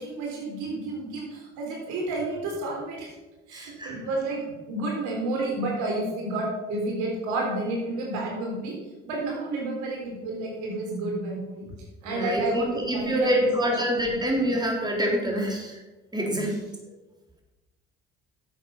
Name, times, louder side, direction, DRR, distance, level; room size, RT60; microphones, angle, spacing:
voice 1, 0.0-3.1 3.5-4.4 4.7-8.8 9.0-11.7 12.0-13.8 14.1-14.2, right 2 dB, 80° right, -1 dB, 3.9 m, -30 dB
voice 2, 3.5-4.0 12.0-15.8 16.1-16.5, equal, 15° right, -1 dB, 3.7 m, -26 dB
10.5 x 8.1 x 5.7 m, 1.1 s
supercardioid pair, 60°, 30 cm